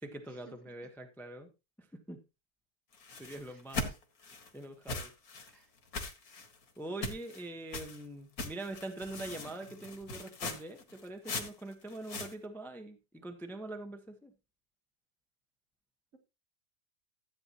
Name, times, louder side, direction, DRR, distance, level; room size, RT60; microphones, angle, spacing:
voice 1, 0.0-1.5 2.1-2.2 3.2-3.9 4.5-5.1 6.8-14.3, right 2 dB, ahead, 5 dB, 1.1 m, -43 dB
sound 1, 2.9-4.5 4.9-5.5 5.9-6.6 7.0-7.4 7.7-8.0 8.4-12.3, left 3 dB, 60° left, 2.2 m, -40 dB
voice 2, 3.3-4.0 5.5-5.7, right 6 dB, 50° right, 3 dB, 2.5 m, -59 dB
14.0 x 9.0 x 3.0 m, 0.27 s
omnidirectional pair, 1.8 m